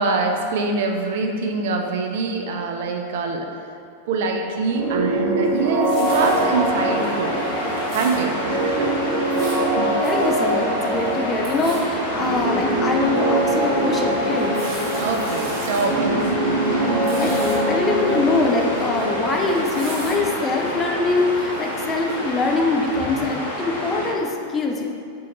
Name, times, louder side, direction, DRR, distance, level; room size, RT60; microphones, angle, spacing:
voice 1, 0.0-3.5 4.1-7.4 7.9-8.9 9.4-10.0 15.0-16.3, right 4 dB, 55° right, 3 dB, 0.3 m, -24 dB
sound 1, 4.7-22.3, right 1 dB, 15° right, 0.7 m, -24 dB
sound 2, 5.5-6.4 7.0-7.1 7.4-8.2 9.1-9.6 10.0-10.1 10.4-10.5 10.8-11.1 11.4-11.8 12.4-12.5 13.0-13.1 14.2-15.9 16.2-16.3 16.6-17.6 18.0-19.0 19.3-20.1 20.6-20.7, right 2 dB, 40° right, 1.1 m, -39 dB
Waves surf, 6.0-24.1, equal, 70° left, 1.2 m, -29 dB
voice 2, 10.0-14.7 16.8-24.9, left 3 dB, 20° left, 1 dB, 0.4 m, -23 dB
4.2 x 2.6 x 3.0 m, 2.4 s
figure-of-eight pair, 90°, 0 cm